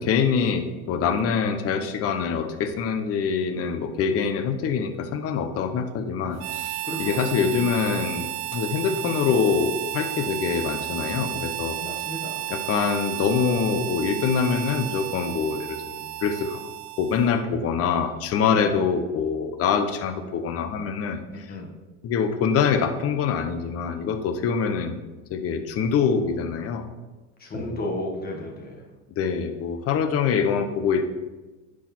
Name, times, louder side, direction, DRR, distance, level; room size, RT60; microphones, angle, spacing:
voice 1, 0.0-11.8 12.5-16.6 17.0-21.6 22.0-25.0 25.3-26.9 27.5-27.8 29.2-31.1, left 6 dB, 45° left, 8 dB, 1.0 m, -25 dB
Harmonica, 6.4-17.5, right 16 dB, 50° right, 0.5 m, -33 dB
voice 2, 6.8-7.2 11.8-12.5 18.5-18.8 21.5-21.7 27.4-28.9, left 1 dB, 25° left, 0 dB, 1.7 m, -33 dB
10.0 x 4.9 x 4.4 m, 1.1 s
supercardioid pair, 110°, 34 cm